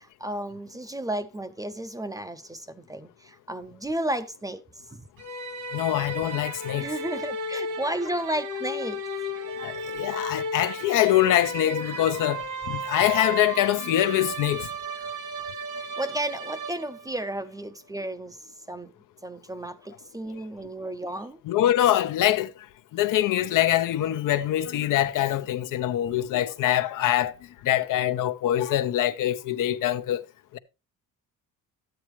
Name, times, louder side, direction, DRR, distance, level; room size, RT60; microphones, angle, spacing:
voice 1, 0.0-5.1 6.8-9.0 9.9-10.0 15.8-18.9 19.2-21.4, right 1 dB, 10° right, 0.5 m, -33 dB
sound 1, 5.2-17.3, right 1 dB, 80° right, 2.5 m, -34 dB
voice 2, 5.7-6.9 9.6-14.7 21.5-22.5 22.9-27.3 27.6-30.3 30.5-30.6, left 13 dB, 75° left, 0.8 m, -24 dB
12.5 x 8.9 x 3.1 m
cardioid pair, 150°, 32 cm